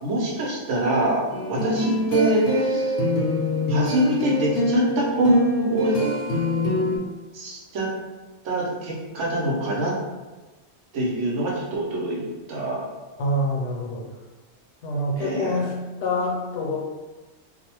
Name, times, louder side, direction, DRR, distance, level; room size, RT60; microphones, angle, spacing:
voice 1, 0.0-2.9 3.7-6.0 7.3-7.9 8.4-9.9 10.9-12.9 15.2-15.6, right 1 dB, 80° right, -3 dB, 1.0 m, -24 dB
sound 1, 1.3-7.0, left 1 dB, 60° left, 0.8 m, -24 dB
voice 2, 13.2-14.0 14.8-15.7 16.0-16.8, left 1 dB, 75° left, -2 dB, 1.0 m, -26 dB
2.5 x 2.1 x 2.8 m, 1.2 s
omnidirectional pair, 1.3 m